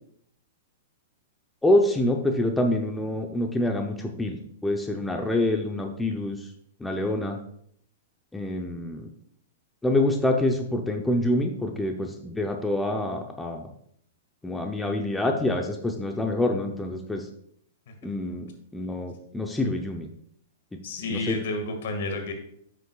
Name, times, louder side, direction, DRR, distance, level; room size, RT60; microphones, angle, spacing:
voice 1, 1.6-4.4 4.6-6.4 6.8-7.4 8.3-9.1 9.8-13.7 14.4-17.3 18.0-20.1 21.1-21.4, left 1 dB, 5° left, 3 dB, 0.8 m, -26 dB
voice 2, 20.8-22.3, left 2 dB, 65° left, 4 dB, 1.9 m, -30 dB
9.2 x 6.6 x 2.4 m, 0.68 s
hypercardioid pair, 125°, 0 cm